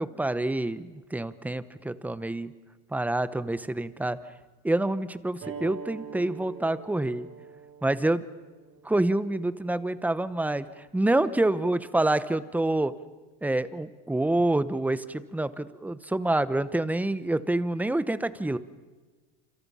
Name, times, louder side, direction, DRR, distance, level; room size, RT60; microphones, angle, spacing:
voice 1, 0.0-2.5 2.9-4.2 4.6-7.3 7.8-8.2 8.8-10.6 10.9-12.9 13.4-18.6, right 2 dB, 5° right, 15 dB, 0.9 m, -27 dB
sound 1, 5.4-10.5, right 6 dB, 40° right, 6.2 m, -45 dB
27.5 x 27.5 x 5.6 m, 1.3 s
supercardioid pair, 125°, 31 cm